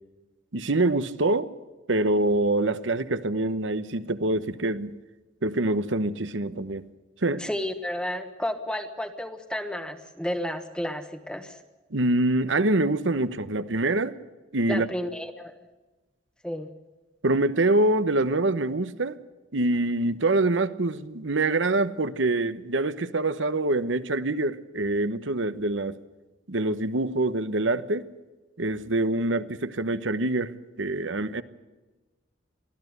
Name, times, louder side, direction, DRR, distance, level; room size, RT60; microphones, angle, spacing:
voice 1, 0.5-1.5 1.9-4.9 5.4-6.8 7.2-7.4 11.9-14.2 14.5-14.9 17.2-19.2 19.5-26.0 26.5-28.1 28.6-31.4, right 2 dB, 80° right, 12 dB, 1.1 m, -25 dB
voice 2, 7.4-11.6 14.7-15.5 16.4-16.7, left 1 dB, 5° left, 7 dB, 1.2 m, -32 dB
23.5 x 15.0 x 8.0 m, 1.2 s
head